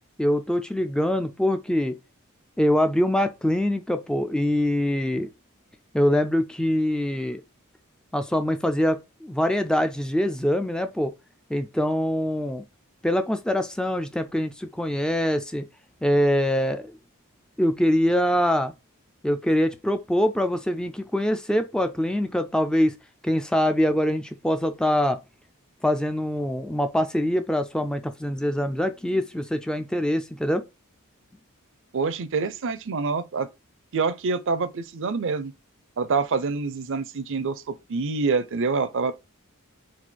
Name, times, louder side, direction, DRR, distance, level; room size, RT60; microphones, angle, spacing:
voice 1, 0.2-2.0 2.6-5.3 5.9-7.4 8.1-11.1 11.5-12.6 13.0-15.6 16.0-16.9 17.6-18.7 19.2-22.9 23.2-25.2 25.8-30.6, equal, 5° left, 0.3 m, -24 dB
voice 2, 31.9-33.5 33.9-35.5 36.0-39.1, right 4 dB, 60° right, 0.5 m, -26 dB
4.2 x 2.4 x 4.4 m
head